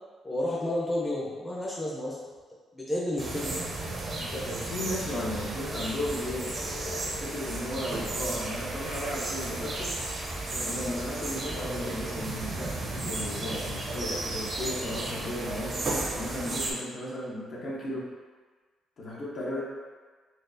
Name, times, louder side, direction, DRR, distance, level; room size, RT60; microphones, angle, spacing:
voice 1, 0.2-2.2 2.7-3.6, left 1 dB, 15° left, -5 dB, 0.7 m, -31 dB
sound 1, 3.2-16.7, right 2 dB, 45° right, 0.7 m, -34 dB
voice 2, 4.2-10.0 10.5-15.8 16.1-18.1 19.0-19.6, left 1 dB, 55° left, -6 dB, 1.0 m, -35 dB
4.3 x 2.4 x 2.6 m, 1.4 s
cardioid pair, 90°, 0 cm